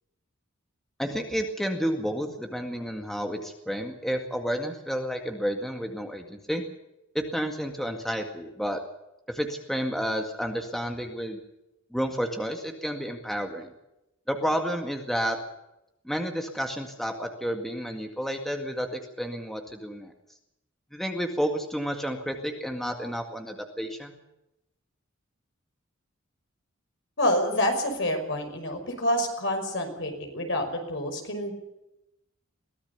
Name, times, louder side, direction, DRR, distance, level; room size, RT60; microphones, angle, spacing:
voice 1, 1.0-6.6 7.1-8.8 9.3-11.4 11.9-13.7 14.3-15.4 16.1-20.1 20.9-24.2, equal, ahead, 3 dB, 2.0 m, -31 dB
voice 2, 27.2-31.5, left 1 dB, 65° left, 5 dB, 5.7 m, -27 dB
22.5 x 18.0 x 7.0 m, 0.90 s
head